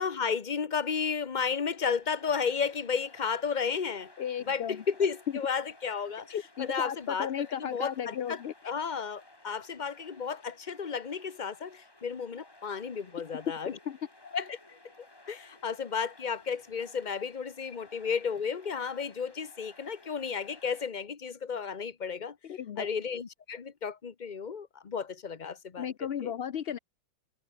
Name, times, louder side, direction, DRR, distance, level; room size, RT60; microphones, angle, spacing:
voice 1, 0.0-4.1 4.4-6.3 6.6-8.4 8.6-13.8 14.3-14.8 15.3-22.4 22.8-25.9 26.2-26.3, left 6 dB, 30° left, 1.0 m, -33 dB
sound 1, 1.4-20.9, left 2 dB, 15° left, 2.0 m, -57 dB
voice 2, 4.2-4.8 6.3-8.5 13.9-14.0 22.4-22.9 25.8-26.8, left 9 dB, 60° left, 0.6 m, -35 dB
omnidirectional pair, 1.9 m